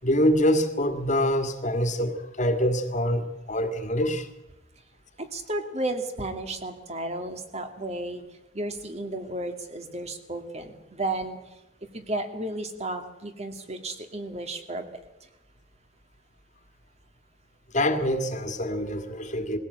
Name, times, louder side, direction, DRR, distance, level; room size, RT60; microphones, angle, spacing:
voice 1, 0.0-4.3 17.7-19.6, equal, 45° left, 2.0 m, -25 dB
voice 2, 5.2-8.2 8.5-11.4 11.9-14.9, right 2 dB, 35° right, 2.5 m, -33 dB
21.0 x 16.5 x 8.5 m
head